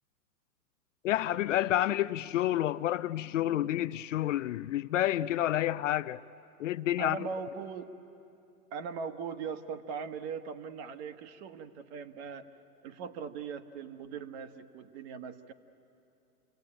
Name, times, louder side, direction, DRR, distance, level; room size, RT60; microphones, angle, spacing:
voice 1, 1.0-6.2 6.6-7.3, left 13 dB, 50° left, 0.5 m, -29 dB
voice 2, 7.0-7.9 8.7-12.5 12.8-15.5, right 5 dB, 40° right, 1.3 m, -40 dB
28.5 x 17.5 x 8.8 m
hypercardioid pair, 125°, 48 cm